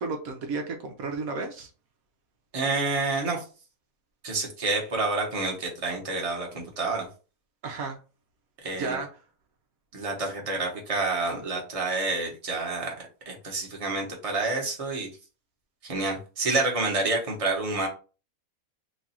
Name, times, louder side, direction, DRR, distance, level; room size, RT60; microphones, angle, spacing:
voice 1, 0.0-1.7 7.6-8.0 8.8-9.1, right 4 dB, 75° right, 4 dB, 1.1 m, -32 dB
voice 2, 2.5-3.4 4.2-7.1 8.6-9.0 9.9-12.9 13.3-15.1 15.8-17.9, right 3 dB, 25° right, 0 dB, 1.0 m, -28 dB
3.1 x 2.4 x 4.1 m, 0.35 s
omnidirectional pair, 1.5 m